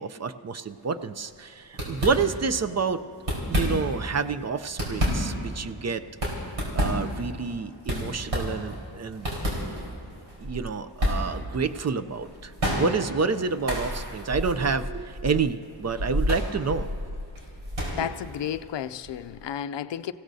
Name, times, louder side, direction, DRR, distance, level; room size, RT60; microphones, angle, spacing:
voice 1, 0.0-3.0 3.5-6.0 6.7-9.3 9.6-9.8 10.4-16.9 18.0-18.1, right 5 dB, 40° right, 10 dB, 0.5 m, -28 dB
sound 1, 0.8-1.1 1.3-1.4 1.7-2.6 3.1-4.1 4.5-19.4, equal, 90° right, 4.2 m, -30 dB
voice 2, 18.0-20.1, left 9 dB, 70° left, 13 dB, 0.5 m, -32 dB
26.5 x 16.0 x 2.7 m, 2.6 s
wide cardioid pair, 115°, 44 cm